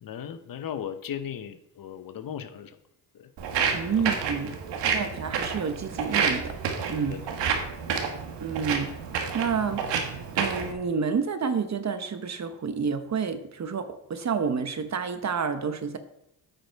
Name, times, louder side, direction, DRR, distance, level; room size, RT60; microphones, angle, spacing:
voice 1, 0.0-2.8 3.1-3.3 3.9-4.1 7.1-7.3 7.6-7.7, left 9 dB, 50° left, 10 dB, 0.8 m, -37 dB
Walk footsteps, 3.4-10.7, right 6 dB, 80° right, 1.4 m, -29 dB
voice 2, 3.7-4.6 4.9-6.6 6.9-7.2 8.4-8.9 9.3-9.8 10.3-16.0, right 6 dB, 40° right, 9 dB, 1.0 m, -29 dB
8.8 x 5.3 x 4.6 m, 0.80 s
cardioid pair, 75°, 43 cm